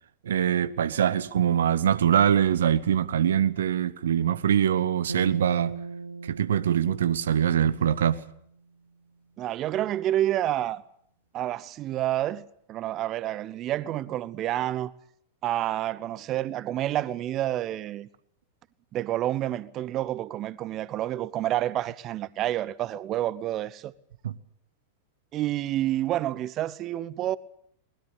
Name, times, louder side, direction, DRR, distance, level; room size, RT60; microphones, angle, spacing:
voice 1, 0.2-5.7 6.2-8.2 24.2-24.3, right 9 dB, 65° right, 1.2 m, -23 dB
sound 1, 5.1-8.4, right 3 dB, 80° right, 0.9 m, -39 dB
voice 2, 9.4-10.8 11.3-14.9 15.4-18.1 18.9-23.9 25.3-27.4, right 13 dB, 35° right, 0.9 m, -29 dB
23.5 x 20.5 x 8.4 m
figure-of-eight pair, 90°, 0 cm